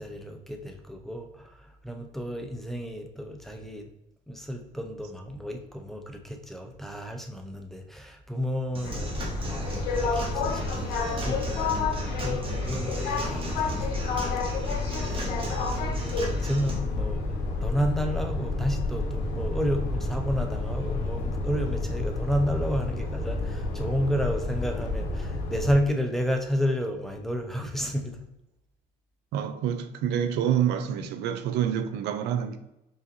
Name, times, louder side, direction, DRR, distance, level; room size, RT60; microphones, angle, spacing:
voice 1, 0.0-3.9 4.3-9.3 9.7-28.2, equal, ahead, 0.5 m, -31 dB
Human voice / Acoustic guitar / Drum, 8.7-16.7, right 1 dB, 30° right, 1.1 m, -38 dB
sound 1, 8.8-25.8, left 3 dB, 90° left, 0.7 m, -30 dB
voice 2, 29.3-32.6, right 9 dB, 80° right, 0.4 m, -27 dB
4.8 x 2.6 x 2.6 m
cardioid pair, 110°, 17 cm